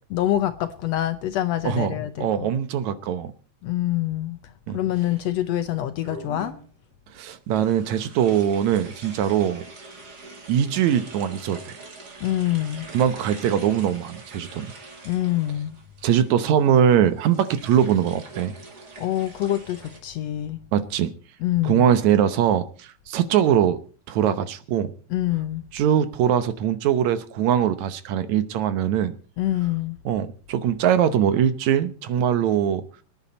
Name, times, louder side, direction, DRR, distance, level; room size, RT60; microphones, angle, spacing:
voice 1, 0.1-2.5 3.6-4.4 4.7-6.5 12.2-12.9 15.0-15.8 19.0-20.6 21.4-21.9 25.1-25.7 29.4-30.0, left 13 dB, 70° left, 1.7 m, -25 dB
voice 2, 1.7-3.3 4.7-4.8 7.1-9.6 10.5-11.8 12.9-14.7 16.0-18.5 20.7-21.1 21.6-23.8 24.1-24.9 25.7-29.1 30.1-32.8, right 9 dB, 70° right, 2.2 m, -22 dB
sound 1, 4.9-5.6 6.0-6.7 7.5-20.0, right 3 dB, 35° right, 2.4 m, -44 dB
23.0 x 10.0 x 4.2 m
omnidirectional pair, 3.5 m